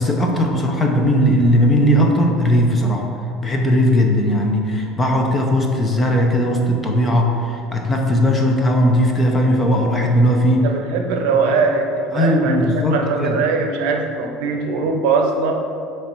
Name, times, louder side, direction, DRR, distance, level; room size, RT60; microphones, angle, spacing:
voice 1, 0.0-3.0 3.4-10.7 12.1-13.4, equal, 15° left, 1 dB, 0.5 m, -17 dB
voice 2, 10.6-12.6 12.9-15.5, right 4 dB, 70° right, 3 dB, 0.7 m, -20 dB
7.0 x 3.2 x 4.4 m, 2.6 s
cardioid pair, 175°, 0 cm